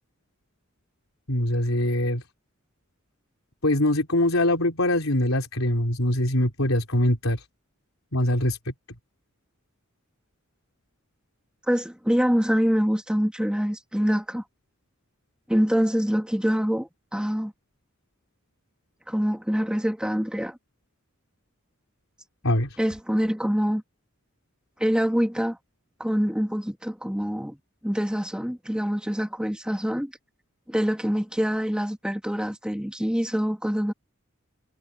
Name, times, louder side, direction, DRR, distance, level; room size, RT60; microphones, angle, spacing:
voice 1, 1.3-2.2 3.6-7.4 8.1-8.6 22.4-22.8, left 1 dB, 85° left, 3.9 m, -23 dB
voice 2, 11.7-14.4 15.5-17.5 19.1-20.6 22.8-23.8 24.8-25.6 26.0-27.6 27.8-30.1 30.7-33.9, equal, 5° right, 1.7 m, -25 dB
head